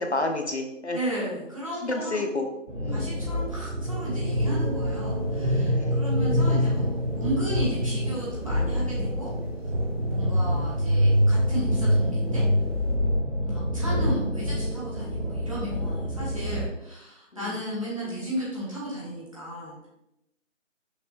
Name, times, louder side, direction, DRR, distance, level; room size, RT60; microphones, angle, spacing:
voice 1, 0.0-1.0 1.8-3.2 5.7-6.0 6.4-6.9 10.8-11.2 17.4-17.6 18.1-18.3, left 2 dB, 60° left, 5 dB, 0.5 m, -31 dB
voice 2, 0.9-2.2 2.9-9.3 10.1-12.4 13.4-19.9, equal, 25° right, -8 dB, 1.2 m, -34 dB
sound 1, 2.7-16.7, equal, 65° right, 1.2 m, -26 dB
sound 2, 4.6-12.9, equal, 50° right, 1.3 m, -43 dB
5.9 x 2.9 x 2.5 m, 0.86 s
figure-of-eight pair, 170°, 39 cm